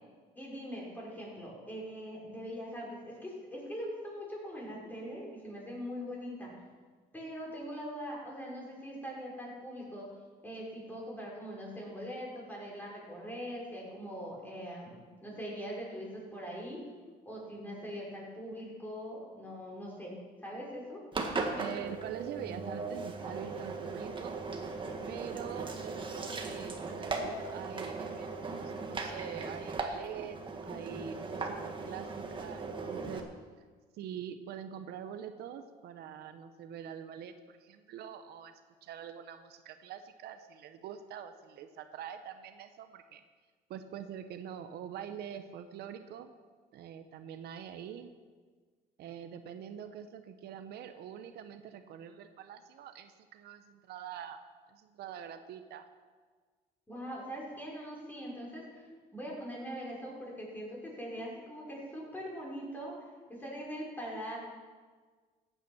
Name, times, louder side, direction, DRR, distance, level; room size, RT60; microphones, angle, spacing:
voice 1, 0.4-6.5 7.1-10.1 10.4-16.8 17.2-20.1 20.4-21.0 56.9-58.9 59.1-62.9 63.3-64.4, equal, 10° left, -3 dB, 5.3 m, -42 dB
Engine, 21.1-33.2, right 3 dB, 30° right, 1.8 m, -38 dB
voice 2, 21.6-24.4 25.1-30.4 30.6-33.2 33.9-38.5 38.8-43.2 43.7-46.3 46.7-48.1 49.0-54.4 54.7-55.9, right 9 dB, 75° right, 9 dB, 0.9 m, -45 dB
15.0 x 9.2 x 6.2 m, 1.5 s
cardioid pair, 110°, 17 cm